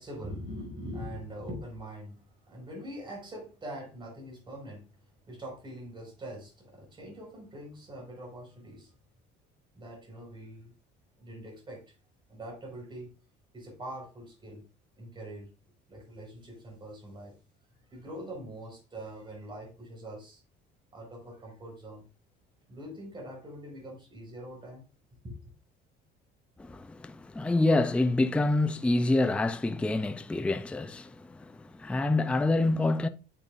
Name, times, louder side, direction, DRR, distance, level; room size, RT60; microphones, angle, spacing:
voice 1, 0.0-4.9 5.3-8.9 9.7-10.7 11.2-11.9 12.3-13.1 13.5-14.6 15.0-15.5 15.9-17.3 17.9-20.4 20.9-22.0 22.7-24.8 25.2-25.3, equal, 25° right, 4.9 m, -43 dB
voice 2, 26.6-33.1, left 2 dB, 5° left, 0.4 m, -27 dB
8.8 x 8.3 x 2.5 m
cardioid pair, 140°, 20 cm